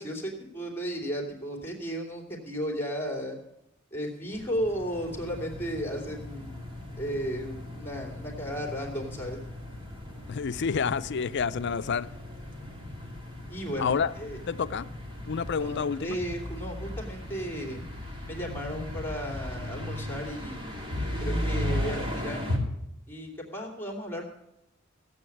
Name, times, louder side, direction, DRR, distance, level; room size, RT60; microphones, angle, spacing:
voice 1, 0.0-3.4 3.9-6.5 7.0-9.4 13.5-14.4 15.5-17.8 18.3-20.6 21.2-22.7 23.1-24.2, equal, 10° left, 3.0 m, -34 dB
sound 1, 4.3-22.6, left 1 dB, 25° right, 2.4 m, -36 dB
voice 2, 10.3-12.1 13.8-14.1 14.5-14.9 15.3-16.2, left 6 dB, 55° left, 0.5 m, -28 dB
16.5 x 7.9 x 8.6 m
head